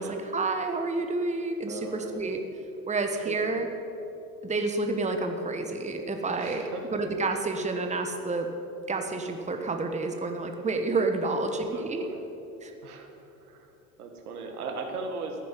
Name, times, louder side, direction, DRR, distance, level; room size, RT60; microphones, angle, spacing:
voice 1, 0.3-2.4 2.9-3.7 4.4-6.6 6.9-8.5 8.9-12.0 12.6-12.7, right 3 dB, 15° right, 5 dB, 1.4 m, -29 dB
voice 2, 1.7-2.2 3.1-3.3 6.3-6.9 11.3-11.4 11.7-12.2 12.8-13.7 14.0-15.4, right 3 dB, 80° right, 3 dB, 2.0 m, -38 dB
14.0 x 9.3 x 7.6 m, 2.9 s
hypercardioid pair, 75°, 44 cm